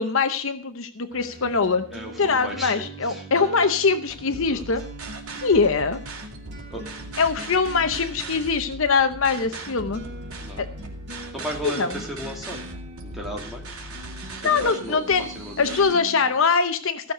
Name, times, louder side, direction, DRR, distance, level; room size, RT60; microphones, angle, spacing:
voice 1, 0.0-1.9 2.2-4.8 5.4-6.0 7.2-10.0 10.6-10.7 11.6-12.0 14.4-15.3 15.6-17.1, left 5 dB, 65° left, 10 dB, 0.8 m, -22 dB
sound 1, 1.1-16.3, right 1 dB, 50° right, 4.3 m, -42 dB
voice 2, 1.9-3.2 4.3-4.6 6.7-6.8 10.4-10.6 11.3-12.6 13.0-13.7 14.6-15.0 15.4-16.0, equal, ahead, -1 dB, 2.6 m, -35 dB
sound 2, 4.1-15.9, right 2 dB, 80° right, 2.6 m, -39 dB
15.5 x 6.6 x 6.6 m, 0.43 s
head